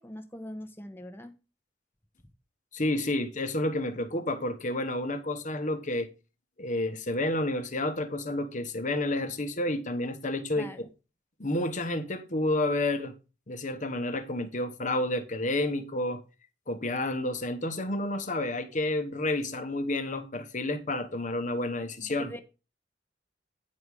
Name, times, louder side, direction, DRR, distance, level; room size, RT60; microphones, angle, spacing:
voice 1, 0.0-1.3 10.5-10.9 22.0-22.4, equal, 10° left, 1.0 m, -42 dB
voice 2, 2.7-6.1 6.6-10.9 11.4-13.1 13.5-16.2 16.7-22.3, left 1 dB, 45° left, 1.1 m, -30 dB
9.7 x 4.8 x 5.3 m
head